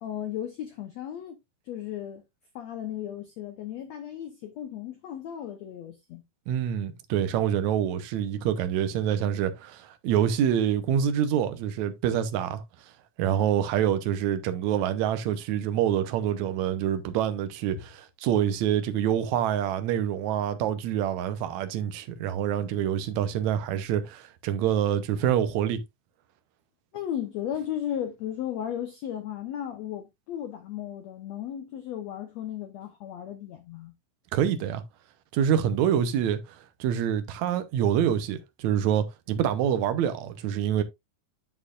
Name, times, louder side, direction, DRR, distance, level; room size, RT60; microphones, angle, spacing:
voice 1, 0.0-1.4 1.6-2.2 2.5-6.2 26.9-33.9, left 10 dB, 80° left, 1.5 m, -35 dB
voice 2, 6.5-12.6 13.2-25.8 34.3-34.8 35.3-36.4 36.8-40.8, right 9 dB, 75° right, 1.7 m, -26 dB
8.6 x 7.5 x 2.5 m
omnidirectional pair, 4.3 m